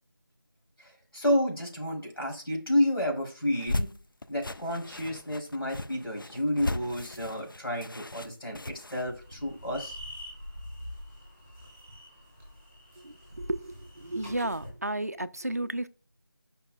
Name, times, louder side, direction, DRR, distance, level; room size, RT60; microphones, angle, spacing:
voice 1, 0.8-3.9 4.3-10.0, left 1 dB, 80° left, 3.4 m, -30 dB
sound 1, 3.5-9.0, left 2 dB, 65° left, 0.5 m, -36 dB
sound 2, 9.0-14.7, left 1 dB, 15° right, 3.5 m, -45 dB
voice 2, 13.0-15.9, right 1 dB, 45° right, 0.4 m, -33 dB
9.0 x 5.4 x 2.3 m
figure-of-eight pair, 180°, 12 cm